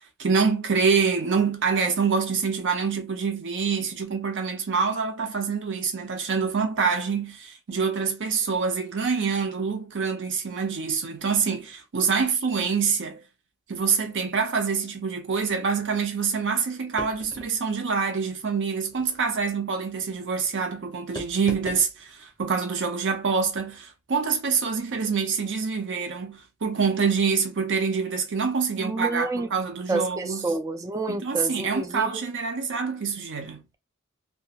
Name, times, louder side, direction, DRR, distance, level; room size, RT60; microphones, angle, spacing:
voice 1, 0.2-13.2 13.7-30.5 31.1-33.6, right 5 dB, 55° right, 0.6 m, -26 dB
sound 1, 17.0-17.6 18.9-19.2 21.2-21.9, left 1 dB, 15° left, 0.7 m, -38 dB
voice 2, 28.8-29.5 29.9-32.1, right 3 dB, 15° right, 0.3 m, -29 dB
2.4 x 2.2 x 2.8 m
head